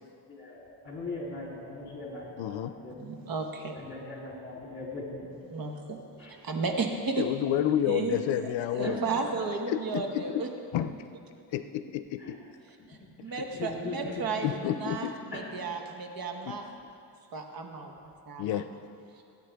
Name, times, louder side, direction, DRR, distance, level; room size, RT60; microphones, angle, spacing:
voice 1, 0.3-3.0 3.7-5.3 6.2-6.3 8.8-9.0 12.2-12.4 13.3-14.2 15.3-15.5, left 3 dB, 30° left, -4 dB, 3.3 m, -40 dB
voice 2, 2.4-2.7 7.2-9.0 9.7-10.4 10.7-10.9 11.5-12.4 14.4-15.2 16.5-16.6 18.4-18.7, left 11 dB, 90° left, 11 dB, 0.6 m, -30 dB
voice 3, 3.0-3.8 5.5-6.0 6.3-7.2 7.9-8.2 8.7-10.5 12.9-16.6 17.3-17.9 18.3-18.6, right 4 dB, 55° right, 3 dB, 1.2 m, -33 dB
17.5 x 9.3 x 3.5 m, 2.4 s
cardioid pair, 120°, 43 cm